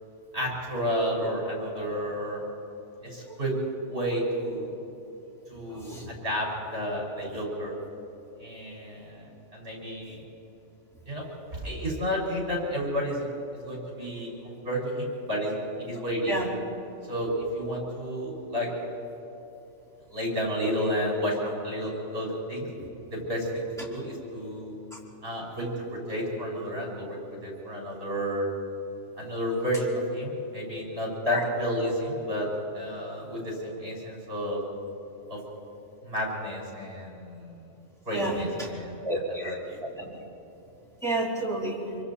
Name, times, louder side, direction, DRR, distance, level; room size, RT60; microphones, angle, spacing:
voice 1, 0.3-2.4 3.0-3.6 3.9-4.7 5.5-7.8 8.4-10.2 11.1-13.3 13.5-16.3 17.1-18.7 20.1-22.7 23.1-24.8 25.2-28.5 29.2-32.5 32.7-34.6 35.3-35.4 36.0-37.6 38.1-39.0 39.3-39.8, equal, 50° right, -3 dB, 5.7 m, -31 dB
voice 2, 38.1-38.7 39.0-40.1 41.0-41.8, right 1 dB, ahead, -6 dB, 4.3 m, -30 dB
25.0 x 24.5 x 4.3 m, 3.0 s
omnidirectional pair, 1.3 m